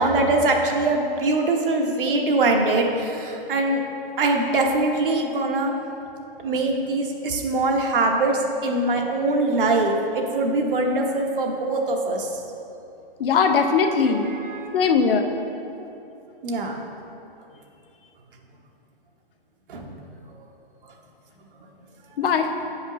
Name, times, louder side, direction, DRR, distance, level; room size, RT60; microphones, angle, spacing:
voice 1, 0.0-3.8 4.2-5.7 6.4-12.3 14.0-14.7 16.4-16.8 19.7-19.9, right 2 dB, 65° right, 2 dB, 1.0 m, -23 dB
voice 2, 13.2-14.3 14.7-15.3 22.2-22.5, left 5 dB, 70° left, 5 dB, 0.8 m, -20 dB
8.8 x 5.2 x 3.0 m, 2.8 s
hypercardioid pair, 160°, 29 cm